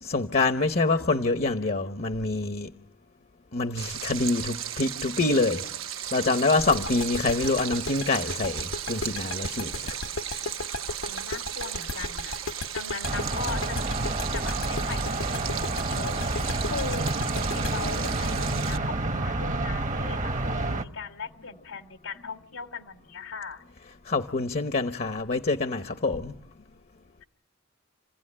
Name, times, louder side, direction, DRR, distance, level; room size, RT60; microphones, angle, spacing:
voice 1, 0.0-2.7 3.5-5.6 6.1-10.0 24.1-26.4, left 3 dB, 45° left, 1.0 m, -26 dB
Stream, 3.8-18.8, right 10 dB, 70° right, 1.2 m, -36 dB
sound 1, 6.7-19.5, left 2 dB, 70° left, 1.0 m, -35 dB
voice 2, 11.0-12.4 12.7-17.1 17.3-23.6, left 4 dB, 90° left, 2.8 m, -39 dB
sound 2, 13.0-20.8, right 2 dB, 40° right, 1.1 m, -29 dB
29.5 x 17.0 x 9.9 m
head